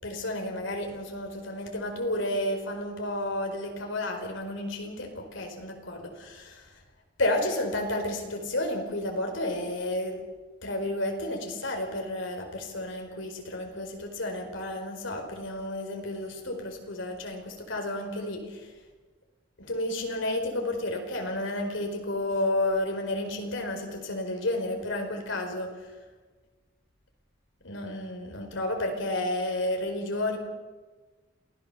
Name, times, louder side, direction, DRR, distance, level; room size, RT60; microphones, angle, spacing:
voice 1, 0.0-6.7 7.2-10.2 10.6-18.7 19.6-25.9 27.6-30.4, left 1 dB, 80° left, 3 dB, 4.6 m, -31 dB
27.5 x 17.0 x 6.9 m, 1.3 s
head